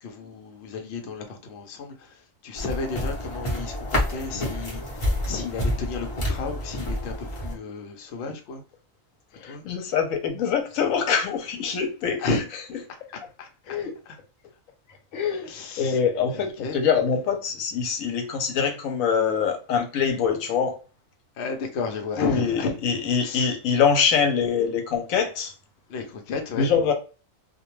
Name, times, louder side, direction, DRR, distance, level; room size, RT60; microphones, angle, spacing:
voice 1, 0.0-8.6 9.4-9.8 12.2-12.4 13.1-13.8 14.1-14.2 15.4-16.0 16.3-16.8 21.4-22.8 23.2-23.6 25.9-26.7, left 4 dB, 65° left, 0.8 m, -33 dB
sound 1, 2.6-7.5, left 1 dB, 30° left, 0.7 m, -28 dB
voice 2, 9.3-12.4 13.7-13.9 15.1-15.5 15.8-20.8 22.2-25.5 26.6-26.9, left 6 dB, 80° left, 1.0 m, -24 dB
2.3 x 2.2 x 2.9 m
omnidirectional pair, 1.4 m